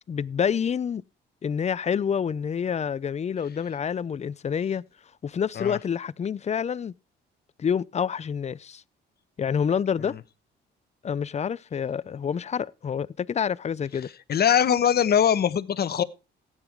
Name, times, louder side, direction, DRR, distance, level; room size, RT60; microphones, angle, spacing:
voice 1, 0.1-1.0 1.4-4.8 5.2-6.9 7.6-8.8 9.4-10.1 11.0-14.1, left 7 dB, 35° left, 0.5 m, -27 dB
voice 2, 14.3-16.0, left 9 dB, 50° left, 1.0 m, -22 dB
14.5 x 9.1 x 4.6 m
cardioid pair, 90°, 20 cm